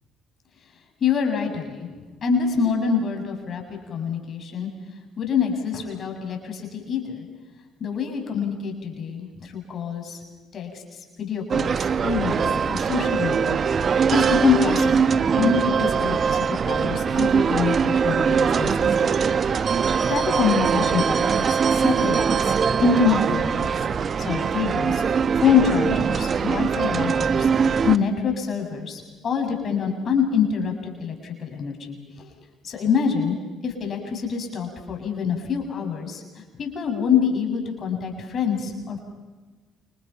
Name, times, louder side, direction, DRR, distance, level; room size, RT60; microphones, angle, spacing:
voice 1, 1.0-1.9 2.2-4.7 5.2-7.2 7.8-10.2 10.5-19.2 19.5-19.7 20.1-22.6 22.8-23.7 24.2-25.0 25.3-27.5 27.8-32.3 32.6-33.4 33.6-39.0, left 6 dB, 50° left, 3 dB, 7.5 m, -26 dB
sound 1, 11.5-28.0, right 6 dB, 45° right, 1.2 m, -22 dB
29.0 x 28.5 x 5.9 m, 1.3 s
hypercardioid pair, 60°, 0 cm